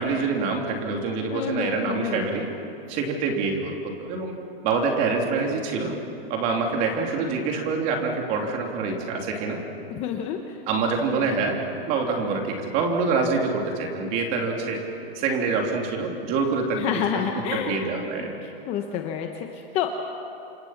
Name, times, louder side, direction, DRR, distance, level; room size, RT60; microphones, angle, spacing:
voice 1, 0.0-2.5 2.9-4.3 4.6-6.0 6.3-9.6 10.7-11.6 11.9-14.8 15.1-17.0 17.3-18.3, right 4 dB, 25° right, 2 dB, 3.2 m, -26 dB
voice 2, 1.3-2.3 9.9-10.6 16.7-17.8 18.2-18.3 18.7-19.9, left 9 dB, 20° left, 4 dB, 1.0 m, -29 dB
28.5 x 26.0 x 5.9 m, 2.8 s
hypercardioid pair, 165°, 31 cm